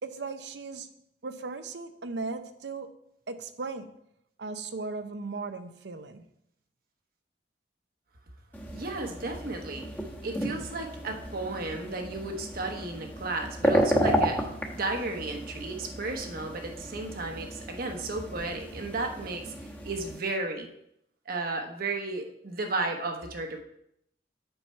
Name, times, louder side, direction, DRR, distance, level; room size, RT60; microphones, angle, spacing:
voice 1, 0.0-0.9 1.2-2.9 3.3-3.9 4.4-6.3, right 3 dB, 75° right, 0.7 m, -37 dB
sound 1, 8.5-20.2, equal, 10° left, 1.0 m, -32 dB
voice 2, 8.7-9.8 10.2-14.5 14.7-20.7 21.3-23.6, right 3 dB, 55° right, 1.0 m, -34 dB
7.8 x 5.7 x 4.5 m
head